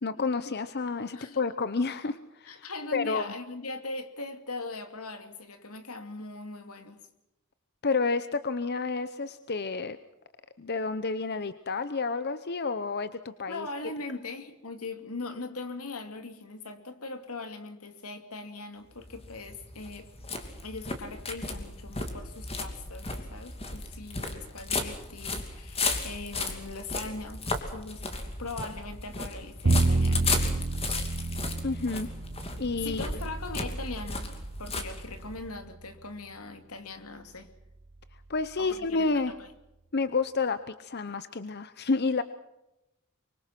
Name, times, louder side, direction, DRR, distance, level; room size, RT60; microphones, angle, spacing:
voice 1, 0.0-2.6 2.9-3.3 7.8-10.0 10.6-13.7 31.6-32.1 32.6-33.0 38.3-39.3 39.9-42.2, left 4 dB, 50° left, 12 dB, 0.8 m, -30 dB
voice 2, 2.4-7.0 13.5-20.1 20.6-30.6 32.8-34.3 34.6-37.5 38.6-39.5, left 3 dB, 80° left, 8 dB, 2.6 m, -40 dB
sound 1, 19.0-35.5, left 3 dB, 25° left, 2.7 m, -35 dB
Bowed string instrument, 29.6-35.8, right 2 dB, 50° right, 0.9 m, -30 dB
25.0 x 24.0 x 6.0 m, 0.88 s
head